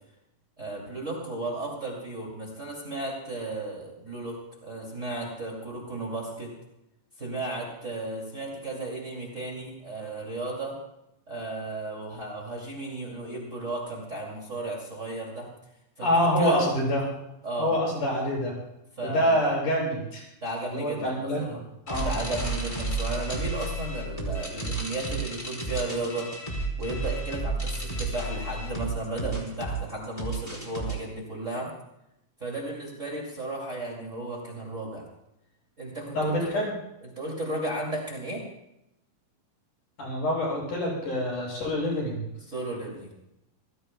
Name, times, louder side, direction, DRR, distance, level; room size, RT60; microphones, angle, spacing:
voice 1, 0.6-6.5 7.2-10.8 11.3-15.5 16.0-16.7 17.4-17.8 19.0-19.5 20.4-21.6 22.0-26.3 26.8-31.7 32.4-35.1 35.8-36.7 37.0-38.4 42.5-43.1, right 2 dB, 25° right, -2 dB, 2.6 m, -34 dB
voice 2, 16.0-17.1 17.6-18.5 19.0-20.2 20.7-21.6 21.9-22.1 36.1-36.7 40.0-42.2, equal, 70° left, -3 dB, 8.1 m, -26 dB
sound 1, 21.9-31.0, right 2 dB, 10° left, 3.6 m, -32 dB
28.0 x 16.0 x 2.3 m, 0.84 s
omnidirectional pair, 3.8 m